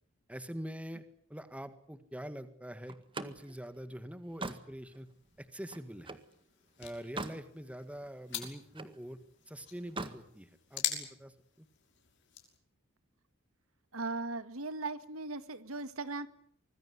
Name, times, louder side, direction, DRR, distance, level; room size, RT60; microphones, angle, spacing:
voice 1, 0.3-1.0 1.3-5.1 5.4-6.2 6.8-9.2 9.5-11.7, equal, 5° right, 11 dB, 1.7 m, -44 dB
Slam, 2.9-6.3 6.8-7.5 7.8-9.0 9.8-10.2, right 2 dB, 25° right, 1.8 m, -43 dB
sound 1, 4.8-12.6, left 9 dB, 55° left, 6.1 m, -44 dB
voice 2, 13.9-16.3, right 3 dB, 75° right, 12 dB, 1.9 m, -38 dB
25.5 x 20.0 x 9.7 m, 0.63 s
head